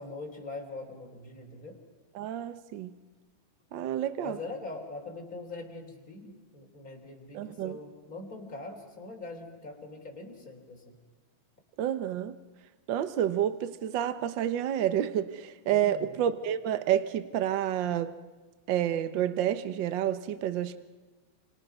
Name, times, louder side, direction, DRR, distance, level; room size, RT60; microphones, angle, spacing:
voice 1, 0.0-1.8 4.2-10.9 15.7-16.2, left 2 dB, 30° left, 2 dB, 3.7 m, -42 dB
voice 2, 2.1-2.9 3.7-4.4 7.3-7.8 11.8-12.3 12.9-18.1 18.7-20.8, right 10 dB, 60° right, 12 dB, 1.2 m, -29 dB
29.0 x 26.5 x 5.6 m, 1.3 s
omnidirectional pair, 3.3 m